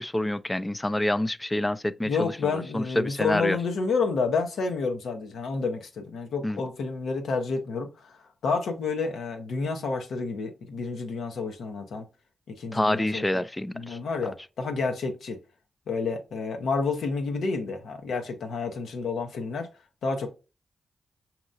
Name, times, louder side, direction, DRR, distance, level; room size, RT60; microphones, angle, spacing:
voice 1, 0.0-3.6 6.4-6.6 12.7-14.0, left 1 dB, 15° left, 0.4 m, -27 dB
voice 2, 2.0-12.1 12.5-13.4 13.7-15.4 15.9-19.7 20.0-20.3, left 4 dB, 85° left, 0.8 m, -30 dB
5.3 x 2.9 x 2.5 m
cardioid pair, 50°, 0 cm